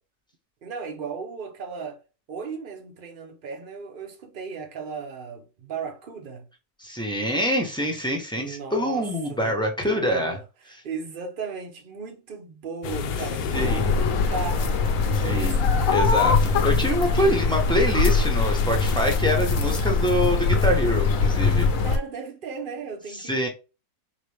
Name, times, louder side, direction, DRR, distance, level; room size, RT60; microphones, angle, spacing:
voice 1, 0.6-2.0 2.3-6.5 8.3-9.6 9.8-10.4 10.7-14.8 15.0-15.8 17.2-17.5 17.8-17.9 21.8-23.5, right 5 dB, 70° right, 0.5 m, -36 dB
voice 2, 6.8-10.4 13.5-13.8 15.1-15.6 15.9-21.7 23.2-23.5, equal, 5° left, 0.6 m, -25 dB
sound 1, 12.8-19.2, left 5 dB, 85° left, 1.3 m, -33 dB
sound 2, 13.5-22.0, left 4 dB, 60° left, 0.9 m, -22 dB
4.1 x 3.0 x 3.3 m
omnidirectional pair, 1.9 m